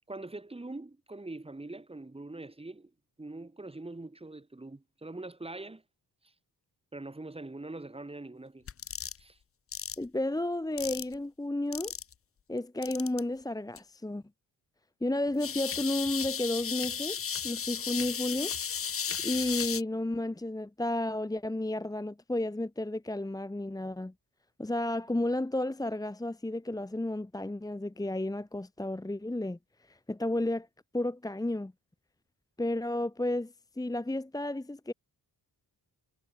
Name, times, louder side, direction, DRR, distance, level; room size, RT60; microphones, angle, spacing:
voice 1, 0.1-2.9 3.2-5.8 6.9-8.7 9.2-9.4, right 2 dB, 15° right, 3.1 m, -43 dB
sound 1, 8.7-9.2 9.7-10.0 10.8-11.1 11.7-12.1 12.8-13.2 13.8-13.9 15.4-19.8, left 7 dB, 35° left, 0.6 m, -34 dB
voice 2, 10.0-11.9 12.5-14.2 15.0-17.2 17.4-18.5 19.2-24.1 24.6-29.6 29.9-30.7 30.9-31.7 32.6-34.9, left 1 dB, 10° left, 1.3 m, -32 dB
wide cardioid pair, 155°, 41 cm